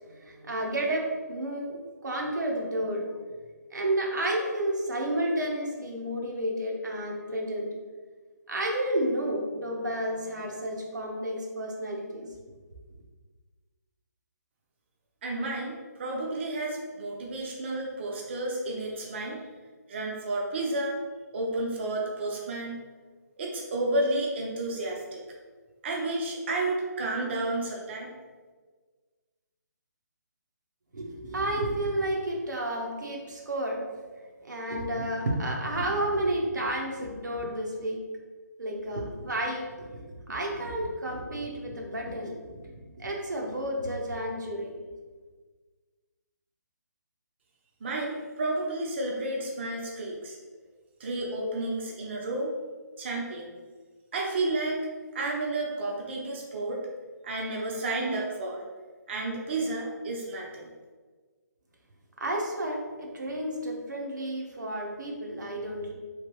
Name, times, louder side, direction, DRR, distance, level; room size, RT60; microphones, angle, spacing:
voice 1, 0.1-3.2 3.7-7.7 8.5-12.3 30.9-33.9 34.4-38.0 38.6-44.7 62.2-65.9, right 1 dB, 90° right, -1 dB, 0.8 m, -31 dB
voice 2, 15.2-19.4 19.9-21.0 21.3-22.8 23.4-25.2 25.8-28.1 47.8-50.4 51.0-52.5 53.0-53.5 54.1-54.9 55.1-56.8 57.2-58.6 59.1-60.7, right 2 dB, 40° right, -2 dB, 0.5 m, -31 dB
3.2 x 2.8 x 3.0 m, 1.4 s
hypercardioid pair, 165°, 10 cm